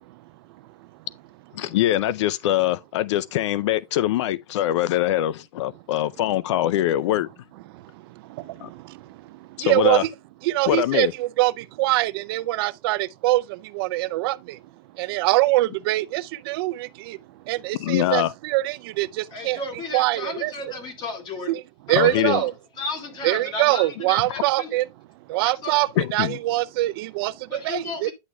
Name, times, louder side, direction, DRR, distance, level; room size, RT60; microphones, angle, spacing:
voice 1, 1.5-7.3 8.6-8.7 9.6-10.0 10.7-11.1 17.8-18.3 21.9-22.4 24.3-24.4 26.0-26.4, left 13 dB, 75° left, 0.4 m, -23 dB
voice 2, 7.7-10.1 10.4-14.6 14.9-17.2 17.5-19.6 19.9-20.5 21.5-22.5 23.2-24.9 25.3-28.1, right 18 dB, 55° right, 0.4 m, -24 dB
voice 3, 19.3-21.6 21.9-22.5 22.8-24.8 25.4-25.8 27.5-28.1, left 2 dB, 30° left, 2.1 m, -33 dB
9.7 x 6.3 x 2.2 m
supercardioid pair, 155°, 15 cm